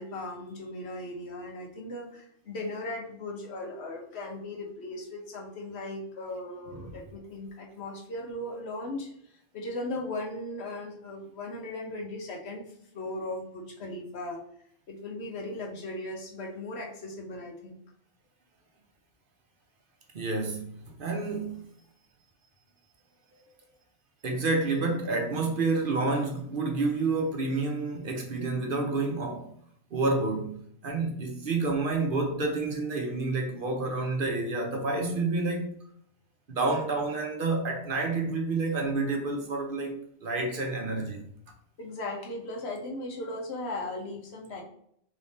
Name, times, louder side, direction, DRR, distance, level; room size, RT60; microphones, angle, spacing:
voice 1, 0.0-12.6 12.9-14.4 14.9-17.8 31.6-31.7 41.8-44.6, left 2 dB, 70° left, 1.2 m, -37 dB
voice 2, 20.1-21.7 24.2-29.5 29.9-35.8 36.5-41.2, right 3 dB, 55° right, 0.9 m, -29 dB
3.4 x 3.2 x 4.1 m
omnidirectional pair, 1.2 m